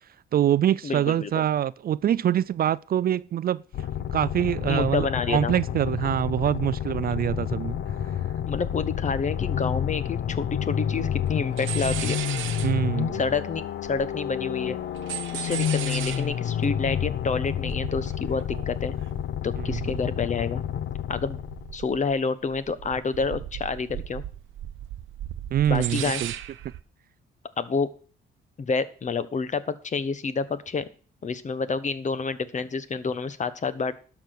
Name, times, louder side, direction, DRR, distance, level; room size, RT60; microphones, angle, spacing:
voice 1, 0.3-3.6 4.1-7.8 12.6-13.2 19.6-19.8 25.5-26.3, right 10 dB, 50° right, 0.4 m, -24 dB
voice 2, 0.8-1.4 4.7-5.5 8.5-12.2 13.1-14.8 15.3-19.0 19.4-20.6 21.1-21.4 21.7-24.2 25.7-26.2 27.6-27.9 28.6-30.9 31.2-34.0, left 4 dB, 40° left, 1.1 m, -28 dB
sound 1, 3.7-21.8, left 9 dB, 65° left, 0.8 m, -29 dB
sound 2, 10.6-10.7 10.9-11.3 11.6-14.3 14.6-20.9 21.2-22.2 22.5-26.8, right 11 dB, 75° right, 0.9 m, -37 dB
12.0 x 6.0 x 6.6 m
cardioid pair, 90°, 20 cm